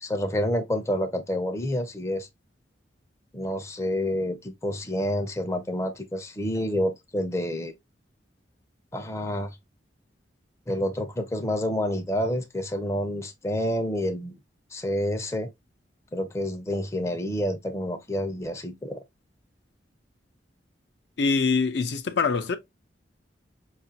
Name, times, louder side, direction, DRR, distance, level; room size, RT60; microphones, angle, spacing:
voice 1, 0.0-2.3 3.3-7.7 8.9-9.6 10.7-14.4 14.7-15.5 16.1-19.0, left 1 dB, 15° left, 0.5 m, -28 dB
voice 2, 21.2-22.6, left 4 dB, 65° left, 0.5 m, -24 dB
5.0 x 2.4 x 2.7 m
head